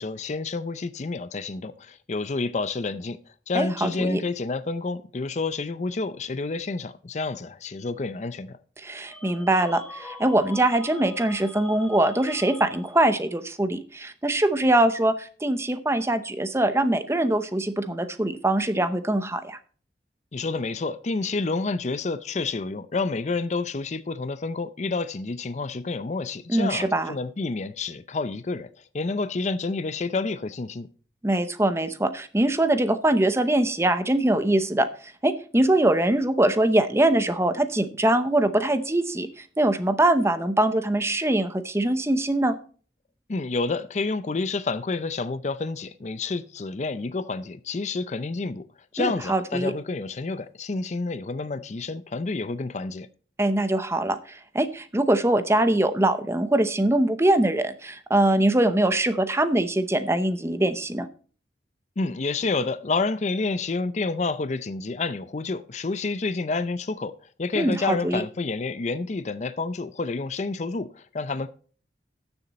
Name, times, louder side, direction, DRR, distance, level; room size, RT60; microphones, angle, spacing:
voice 1, 0.0-3.2 3.5-8.6 20.3-28.7 28.9-30.9 43.3-48.7 48.9-53.1 62.0-71.5, left 3 dB, 40° left, 0.5 m, -29 dB
voice 2, 3.5-4.2 8.8-19.6 26.5-27.1 31.2-34.9 35.2-42.6 49.0-49.7 53.4-61.1 67.5-68.2, right 1 dB, 15° right, 0.7 m, -23 dB
sound 1, 9.1-13.2, left 2 dB, 5° left, 1.3 m, -43 dB
13.0 x 7.1 x 4.1 m
head